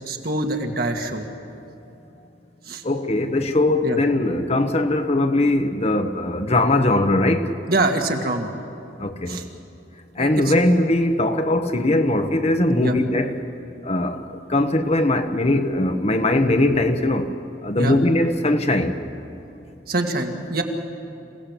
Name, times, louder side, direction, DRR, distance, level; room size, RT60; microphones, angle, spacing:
voice 1, 0.1-1.2 2.7-2.8 3.8-4.0 7.7-8.5 9.3-9.5 10.2-10.5 12.8-13.0 17.8-18.0 19.9-20.6, right 2 dB, 55° right, 2.1 m, -24 dB
voice 2, 2.8-7.5 9.0-9.4 10.1-13.4 13.8-17.3 17.6-19.0, left 1 dB, 35° left, 1.1 m, -20 dB
27.0 x 17.5 x 8.4 m
head